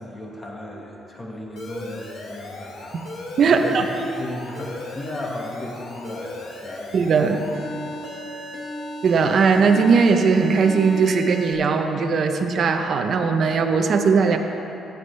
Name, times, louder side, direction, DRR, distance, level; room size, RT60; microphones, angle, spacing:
voice 1, 0.0-7.3 7.7-8.9, left 1 dB, 25° left, -2 dB, 1.5 m, -36 dB
Alarm, 1.6-11.5, left 1 dB, 70° left, 1.6 m, -36 dB
voice 2, 3.4-3.9 6.9-7.4 9.0-14.4, right 5 dB, 45° right, 5 dB, 0.7 m, -19 dB
15.5 x 9.6 x 3.3 m, 3.0 s
cardioid pair, 150°, 0 cm